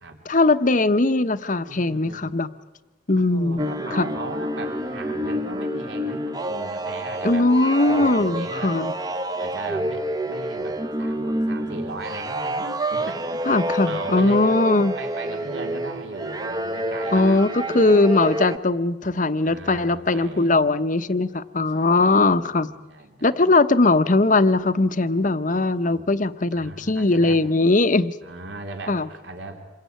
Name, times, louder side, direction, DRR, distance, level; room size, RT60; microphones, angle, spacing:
voice 1, 0.2-2.5 3.1-3.6 3.9-4.1 7.2-8.9 13.5-15.0 17.1-22.7 23.2-28.2 28.9-29.1, left 2 dB, 40° left, 12 dB, 0.9 m, -20 dB
voice 2, 1.7-2.2 3.2-7.5 7.8-8.8 9.4-13.5 13.8-17.8 19.4-20.5 21.8-23.4 25.7-26.1 26.5-27.4 28.2-29.6, right 2 dB, 70° right, 3 dB, 3.2 m, -37 dB
sound 1, 3.6-18.6, right 1 dB, 20° right, 1.0 m, -28 dB
27.5 x 22.5 x 9.3 m, 1.2 s
head